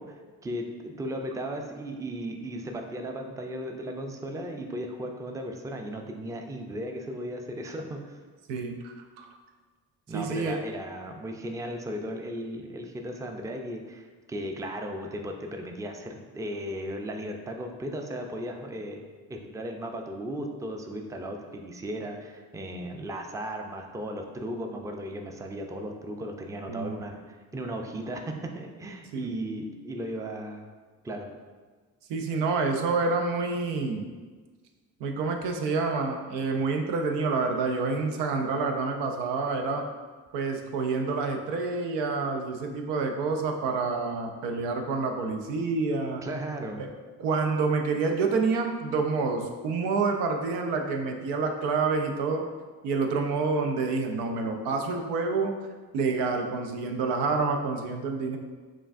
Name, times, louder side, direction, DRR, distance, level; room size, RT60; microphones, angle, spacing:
voice 1, 0.0-8.2 10.1-19.0 19.3-30.7 31.0-31.3 46.2-46.9, right 1 dB, 10° right, 3 dB, 0.4 m, -36 dB
voice 2, 8.5-9.3 10.1-10.6 26.7-26.9 29.1-29.3 32.1-34.1 35.0-39.8 40.3-46.2 46.8-46.9 47.2-52.4 52.8-55.5 55.9-58.4, right 4 dB, 85° right, 3 dB, 0.6 m, -28 dB
5.6 x 2.4 x 2.5 m, 1.4 s
supercardioid pair, 60°, 40 cm